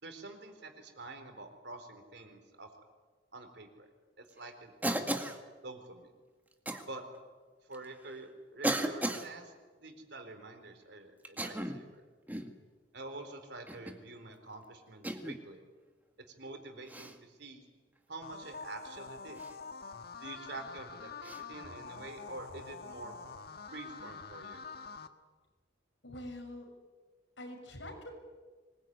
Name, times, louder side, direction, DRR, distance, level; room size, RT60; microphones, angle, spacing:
voice 1, 0.0-2.8 3.3-3.9 4.2-5.2 5.6-6.1 6.9-7.0 7.6-9.5 9.8-12.1 12.9-15.6 16.4-17.6 18.1-19.4 20.2-23.2 23.7-24.6, right 2 dB, 65° right, 6 dB, 4.2 m, -47 dB
Cough, 4.8-5.4 6.7-6.9 7.7-7.8 8.6-9.3 11.2-11.9 12.3-12.6 13.7-14.0 15.0-15.4 16.9-17.2 19.4-19.5 21.2-21.4, right 1 dB, 10° right, 2.0 m, -35 dB
sound 1, 18.2-25.1, left 5 dB, 60° left, 1.5 m, -46 dB
voice 2, 26.0-26.7 27.4-28.2, left 1 dB, 85° left, 3 dB, 6.8 m, -44 dB
25.0 x 21.5 x 9.6 m, 1.4 s
head